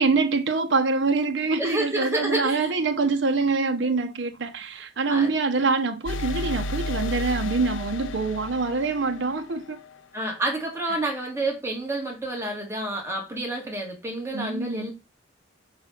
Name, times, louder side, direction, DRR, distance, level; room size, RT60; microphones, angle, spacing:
voice 1, 0.0-9.8 10.9-11.0 14.3-14.9, right 4 dB, 70° right, 0.9 m, -25 dB
voice 2, 1.6-2.7 3.8-3.9 5.1-5.3 10.1-14.9, right 1 dB, 15° right, 2.5 m, -29 dB
sound 1, 6.1-9.8, left 1 dB, 90° left, 0.6 m, -32 dB
5.8 x 5.5 x 5.8 m
head